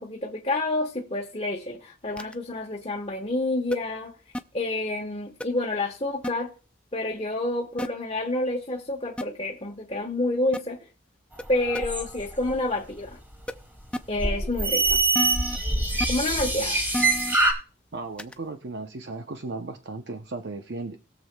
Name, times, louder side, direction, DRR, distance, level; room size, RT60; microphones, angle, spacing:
voice 1, 0.0-4.1 4.5-6.5 6.9-10.8 11.5-13.2 14.1-15.0 16.1-16.8, left 2 dB, 30° left, 1.1 m, -28 dB
sound 1, 2.2-2.4 3.7-3.8 4.3-4.4 5.4-5.5 6.2-6.3 7.8-7.9 9.2-9.3 10.5-10.6 11.4-11.5 11.7-11.8 13.5-13.6 13.9-14.0 15.1-15.6 16.0-16.1 16.9-17.4 18.2-18.4, left 1 dB, 5° left, 0.4 m, -30 dB
sound 2, 11.3-12.5 14.2-17.5, right 2 dB, 10° right, 1.9 m, -24 dB
voice 2, 17.9-21.0, right 3 dB, 60° right, 0.7 m, -36 dB
20.5 x 7.2 x 2.2 m
head